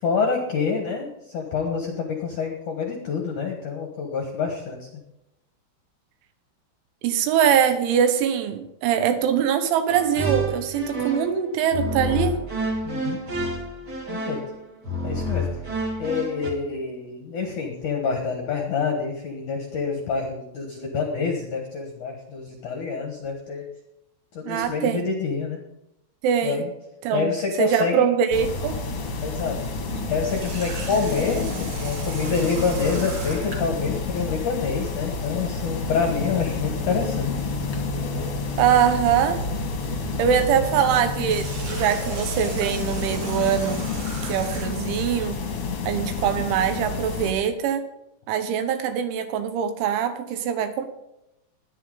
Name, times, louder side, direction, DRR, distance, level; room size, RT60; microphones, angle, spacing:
voice 1, 0.0-5.0 12.8-13.2 14.1-14.4 15.0-15.5 16.0-23.7 24.3-25.6 26.4-26.7 27.1-28.0 29.2-29.6 30.1-37.3, left 5 dB, 70° left, 2 dB, 2.0 m, -27 dB
voice 2, 7.0-12.4 24.4-25.0 26.2-26.7 27.0-27.3 27.6-28.8 29.9-30.1 38.6-39.4 40.2-43.8 44.2-45.4 45.9-47.8 48.3-50.9, right 8 dB, 80° right, 8 dB, 3.4 m, -23 dB
sound 1, 9.9-11.4 11.7-16.5, right 1 dB, 35° right, 1.8 m, -29 dB
sound 2, 28.3-47.3, left 3 dB, 50° left, 1.7 m, -29 dB
Water tap faucet, 30.3-33.7 41.1-44.9, right 3 dB, 60° right, 4.9 m, -37 dB
18.5 x 10.5 x 3.9 m, 0.87 s
omnidirectional pair, 5.6 m